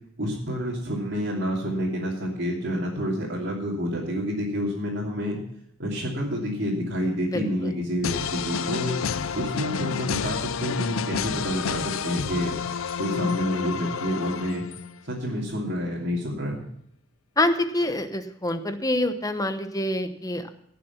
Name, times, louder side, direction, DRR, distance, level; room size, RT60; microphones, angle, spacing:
voice 1, 0.2-5.4 5.8-9.0 9.3-12.5 13.0-14.6 15.0-16.6, equal, 60° right, -5 dB, 2.8 m, -28 dB
voice 2, 7.3-7.7 17.4-20.5, left 1 dB, 20° left, 8 dB, 1.0 m, -26 dB
sound 1, 8.0-15.0, left 6 dB, 90° left, 0.6 m, -30 dB
17.0 x 6.8 x 5.9 m, 0.74 s
head